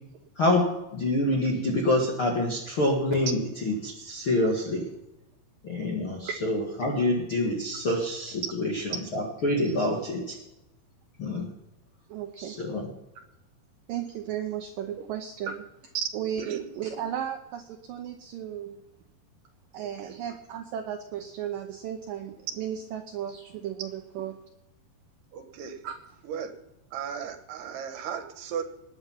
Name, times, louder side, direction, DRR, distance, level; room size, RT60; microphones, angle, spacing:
voice 1, 0.3-4.9 5.6-10.3 11.2-11.5 12.4-12.9, left 1 dB, 50° left, -1 dB, 1.5 m, -27 dB
voice 2, 12.1-12.6 13.9-15.6 16.1-18.8 19.7-24.4 25.8-26.0, right 9 dB, 85° right, 5 dB, 1.9 m, -35 dB
voice 3, 25.3-25.8 26.2-26.5 26.9-28.6, right 8 dB, 70° right, 8 dB, 3.0 m, -35 dB
19.5 x 8.6 x 5.8 m, 0.94 s
omnidirectional pair, 5.2 m